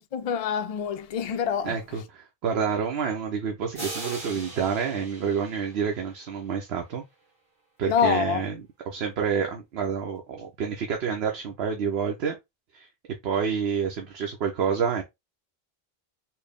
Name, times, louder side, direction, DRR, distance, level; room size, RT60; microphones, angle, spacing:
voice 1, 0.1-1.8 7.9-8.4, left 7 dB, 45° left, 0.5 m, -26 dB
voice 2, 1.6-7.0 7.8-8.6 8.9-12.4 12.7-12.9 13.2-15.0, right 6 dB, 80° right, 0.9 m, -28 dB
sound 1, 3.7-6.4, right 2 dB, 30° right, 1.2 m, -40 dB
4.4 x 2.0 x 3.4 m
omnidirectional pair, 1.0 m